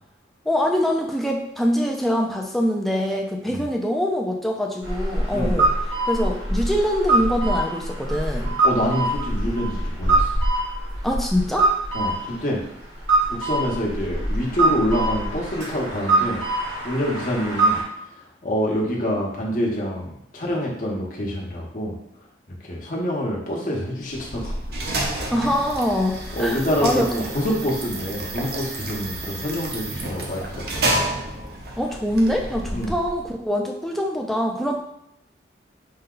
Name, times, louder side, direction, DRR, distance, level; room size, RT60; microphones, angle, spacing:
voice 1, 0.5-5.7 6.1-8.6 11.0-11.7 25.3-27.1 31.8-34.8, equal, ahead, 1 dB, 0.4 m, -24 dB
sound 1, 4.8-17.8, right 2 dB, 85° right, 1.5 m, -24 dB
voice 2, 8.6-10.3 11.9-12.6 13.3-16.4 16.8-17.8 18.4-22.0 22.6-24.5 25.2-25.3 26.3-31.0 32.7-33.0, equal, 45° left, -3 dB, 1.0 m, -26 dB
sound 2, 24.1-33.4, right 1 dB, 55° right, 0.7 m, -30 dB
5.4 x 2.3 x 3.8 m, 0.79 s
head